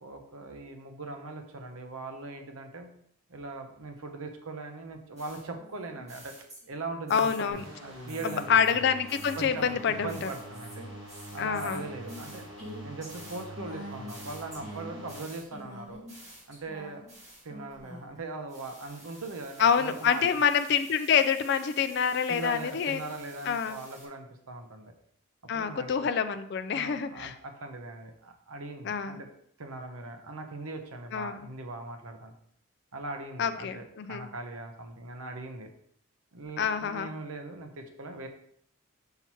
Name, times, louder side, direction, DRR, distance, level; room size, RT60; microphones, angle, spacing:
voice 1, 0.0-2.9 3.3-6.3 6.7-8.8 9.4-10.9 11.3-12.5 12.8-16.0 16.5-17.0 17.4-20.4 22.3-24.9 25.5-26.1 26.7-29.3 29.6-32.3 32.9-35.7 36.3-38.3, right 3 dB, 80° right, 5 dB, 0.8 m, -40 dB
sound 1, 5.2-7.6 8.1-18.2 18.5-24.0, equal, 30° right, 2.1 m, -48 dB
voice 2, 7.1-7.6 8.2-10.3 11.4-11.8 19.6-23.0 23.4-23.8 25.5-27.3 28.9-29.2 31.1-31.4 33.4-34.3 36.6-37.1, left 7 dB, 50° left, 9 dB, 0.3 m, -27 dB
sound 2, 7.5-15.2, right 1 dB, 60° right, 1.8 m, -44 dB
5.7 x 5.6 x 3.0 m, 0.67 s
head